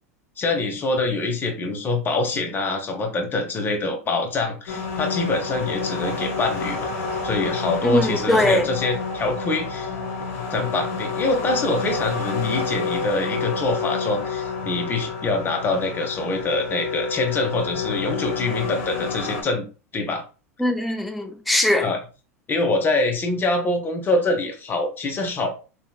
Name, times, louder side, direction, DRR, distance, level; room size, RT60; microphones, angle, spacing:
voice 1, 0.4-6.9 7.2-9.9 10.3-19.6 19.9-20.2 21.8-22.0 22.5-25.5, left 2 dB, 25° left, 0.9 m, -25 dB
sound 1, 4.7-19.4, left 4 dB, 60° left, 1.0 m, -29 dB
voice 2, 7.8-8.7 20.6-21.9, left 1 dB, ahead, 0.3 m, -21 dB
3.3 x 2.8 x 2.3 m
hypercardioid pair, 95°, 8 cm